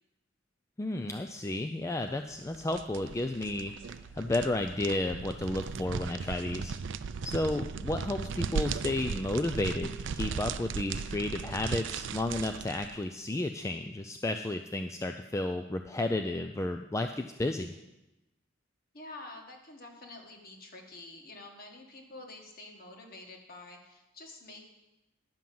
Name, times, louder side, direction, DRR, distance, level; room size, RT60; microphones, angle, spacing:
voice 1, 0.8-3.8 4.1-6.7 7.2-17.7, left 2 dB, 15° left, 6 dB, 0.3 m, -32 dB
sound 1, 2.3-13.0, right 5 dB, 60° right, 0.4 m, -37 dB
voice 2, 4.1-4.7 18.9-24.7, left 2 dB, 45° left, 2 dB, 1.6 m, -48 dB
10.5 x 5.6 x 7.6 m, 0.96 s
head